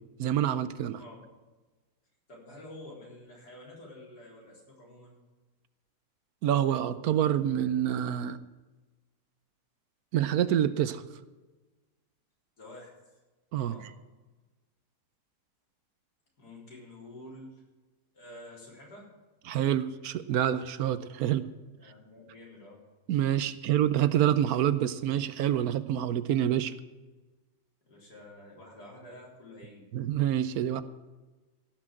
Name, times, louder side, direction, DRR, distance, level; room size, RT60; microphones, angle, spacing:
voice 1, 0.2-1.0 6.4-8.4 10.1-11.0 13.5-13.7 19.5-21.5 23.1-26.7 29.9-30.8, right 11 dB, 75° right, 14 dB, 1.1 m, -27 dB
voice 2, 2.3-5.1 12.6-13.0 13.6-13.9 16.4-17.6 18.1-19.1 21.8-22.8 27.9-29.8, left 1 dB, 85° left, -3 dB, 4.4 m, -49 dB
16.5 x 6.1 x 7.5 m, 1.2 s
omnidirectional pair, 1.7 m